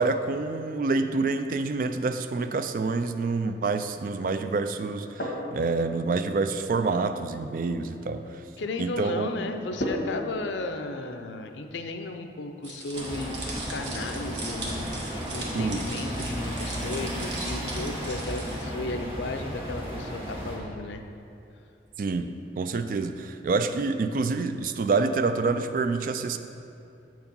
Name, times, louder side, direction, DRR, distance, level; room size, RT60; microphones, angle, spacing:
voice 1, 0.0-8.4 8.8-9.3 15.5-15.9 22.0-22.3 22.6-26.4, right 3 dB, 50° right, 9 dB, 0.3 m, -27 dB
sound 1, 4.8-22.8, left 1 dB, 70° left, 1.4 m, -42 dB
voice 2, 8.6-14.9 15.3-21.0, left 2 dB, 85° left, 6 dB, 0.5 m, -34 dB
sound 2, 12.6-18.6, right 2 dB, 80° right, 1.3 m, -39 dB
sound 3, 12.9-20.6, equal, 30° right, 1.2 m, -34 dB
7.6 x 4.7 x 5.3 m, 2.7 s
head